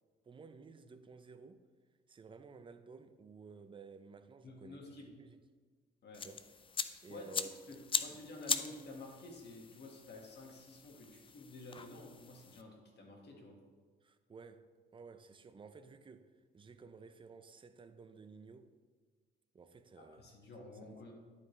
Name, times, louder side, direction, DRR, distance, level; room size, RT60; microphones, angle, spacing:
voice 1, 0.2-1.6 2.1-5.4 6.2-6.4 7.0-7.5 14.0-18.7 19.5-20.3 20.8-21.0, right 4 dB, 25° right, 0.5 m, -54 dB
voice 2, 4.4-5.1 6.0-6.3 7.1-7.2 7.7-13.6 20.0-21.1, left 2 dB, 60° left, 1.8 m, -51 dB
sound 1, 6.1-12.6, left 5 dB, 25° left, 0.4 m, -41 dB
11.0 x 4.9 x 3.2 m
cardioid pair, 90°, 20 cm